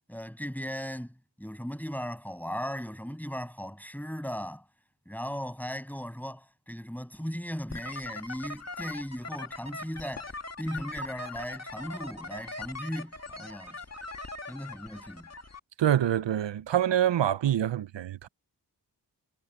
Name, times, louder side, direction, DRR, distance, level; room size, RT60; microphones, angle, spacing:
voice 1, 0.1-4.6 5.0-10.3 10.6-13.8 14.5-15.3, equal, 5° left, 6.7 m, -37 dB
sound 1, 7.7-15.6, left 2 dB, 35° left, 2.2 m, -41 dB
voice 2, 15.8-18.3, right 11 dB, 85° right, 0.7 m, -26 dB
cardioid pair, 50°, 43 cm